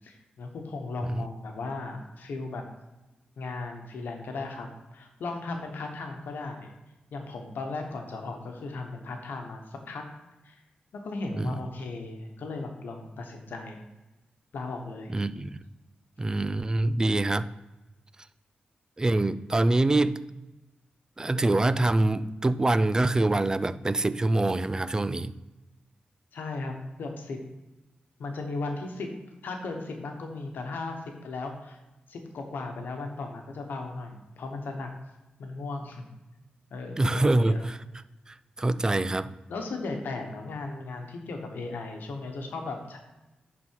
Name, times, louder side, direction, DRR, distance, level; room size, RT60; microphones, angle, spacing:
voice 1, 0.0-2.6 3.4-6.7 7.1-10.0 10.4-10.6 10.9-13.8 14.5-15.1 26.3-27.4 28.2-29.1 29.4-31.8 32.1-34.9 35.4-36.0 36.7-37.7 39.5-43.0, left 3 dB, 90° left, 4 dB, 1.1 m, -36 dB
voice 2, 11.4-11.7 15.1-15.6 16.2-17.5 19.0-20.2 21.2-25.3 37.0-37.8 38.3-39.3, right 2 dB, 20° right, 15 dB, 0.4 m, -25 dB
10.5 x 4.0 x 4.6 m, 1.0 s
cardioid pair, 85°, 3 cm